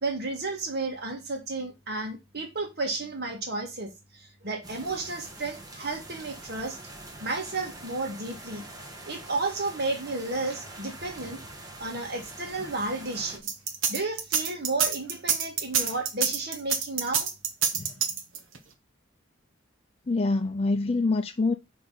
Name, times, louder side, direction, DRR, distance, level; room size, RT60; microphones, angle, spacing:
voice 1, 0.0-6.8 7.2-8.7 9.1-11.4 11.8-13.4 13.9-17.3, right 3 dB, 55° right, 1.8 m, -32 dB
sound 1, 4.6-13.4, right 2 dB, 20° right, 1.4 m, -44 dB
sound 2, 13.4-18.6, right 7 dB, 80° right, 1.1 m, -26 dB
voice 2, 20.1-21.5, left 3 dB, 30° left, 0.5 m, -25 dB
6.1 x 3.5 x 5.4 m
head